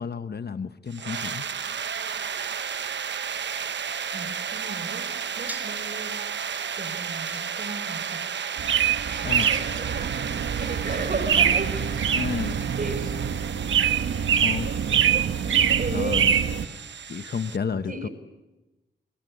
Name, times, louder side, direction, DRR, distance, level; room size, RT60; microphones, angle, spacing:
voice 1, 0.0-1.4 9.2-9.6 12.1-12.6 14.4-14.7 15.9-16.4 17.1-18.1, left 6 dB, 55° left, 11 dB, 1.2 m, -31 dB
sound 1, 0.9-17.6, right 7 dB, 65° right, 1.0 m, -33 dB
voice 2, 4.1-5.1 5.4-6.2 6.8-8.2 9.1-11.8 12.7-13.4 15.7-16.3 17.9-18.1, right 3 dB, 45° right, 10 dB, 4.7 m, -35 dB
sound 2, 5.5-5.9 7.3-8.0 9.4-10.2, right 1 dB, 10° right, 6.2 m, -41 dB
sound 3, 8.6-16.6, right 8 dB, 85° right, 1.4 m, -24 dB
26.5 x 22.0 x 8.5 m, 1.1 s
cardioid pair, 65°, 20 cm